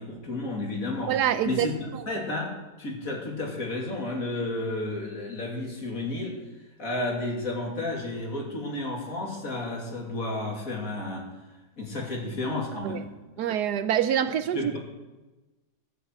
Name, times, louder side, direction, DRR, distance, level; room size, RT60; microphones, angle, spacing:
voice 1, 0.0-1.1 1.4-6.4 6.8-11.3 11.8-13.1 14.5-14.8, left 2 dB, 55° left, 0 dB, 3.1 m, -32 dB
voice 2, 1.1-1.7 1.9-2.0 12.8-13.0 13.4-14.7, right 10 dB, 75° right, 12 dB, 1.2 m, -26 dB
15.5 x 13.0 x 4.7 m, 1.1 s
omnidirectional pair, 1.8 m